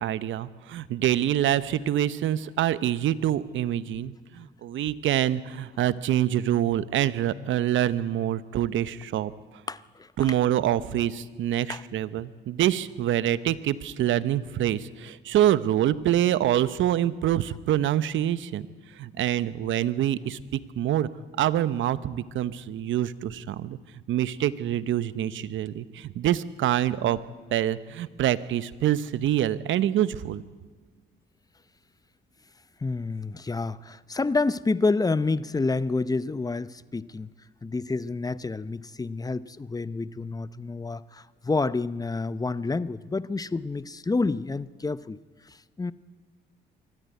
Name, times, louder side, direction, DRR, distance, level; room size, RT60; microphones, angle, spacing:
voice 1, 0.0-9.3 10.2-18.7 19.0-21.1 21.4-23.8 24.1-27.2 27.5-30.4, right 12 dB, 75° right, 16 dB, 0.9 m, -26 dB
voice 2, 9.7-10.1 11.7-11.8 32.8-37.3 37.6-45.2 45.5-45.9, left 3 dB, 20° left, 17 dB, 0.7 m, -28 dB
24.0 x 14.0 x 9.4 m, 1.4 s
cardioid pair, 90°, 20 cm